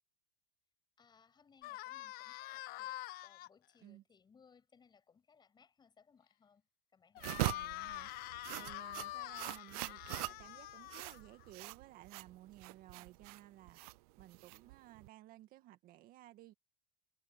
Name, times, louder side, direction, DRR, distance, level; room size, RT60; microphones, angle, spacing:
voice 1, 1.0-7.5 12.9-13.3, left 6 dB, 20° left, 7.2 m, -67 dB
sound 1, 1.6-3.5 7.1-11.5, left 17 dB, 50° left, 1.3 m, -46 dB
sound 2, 7.2-15.1, right 23 dB, 65° right, 0.5 m, -42 dB
voice 2, 7.3-8.1 8.5-13.8 14.2-16.5, right 14 dB, 45° right, 2.1 m, -57 dB
supercardioid pair, 120°, 20 cm